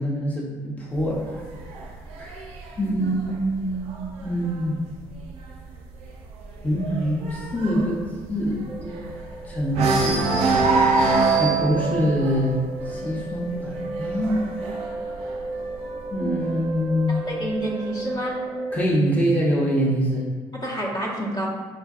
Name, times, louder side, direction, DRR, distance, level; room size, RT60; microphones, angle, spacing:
voice 1, 0.0-1.5 2.2-2.4 2.8-3.9 4.2-4.8 6.6-8.0 8.3-9.1 9.4-10.2 11.3-12.6 12.9-14.4 16.1-17.2 18.7-20.3, equal, 15° left, -5 dB, 0.8 m, -24 dB
sound 1, 0.9-4.6 5.0-5.3 5.6-5.7 6.1-9.3 9.7-16.2 17.1-18.1, right 3 dB, 80° right, 0.4 m, -25 dB
sound 2, 8.7-18.9, right 2 dB, 15° right, 0.5 m, -34 dB
voice 2, 17.3-18.4 20.6-21.5, right 1 dB, 45° left, -4 dB, 0.9 m, -28 dB
4.5 x 2.5 x 2.4 m, 1.4 s
supercardioid pair, 70°, 11 cm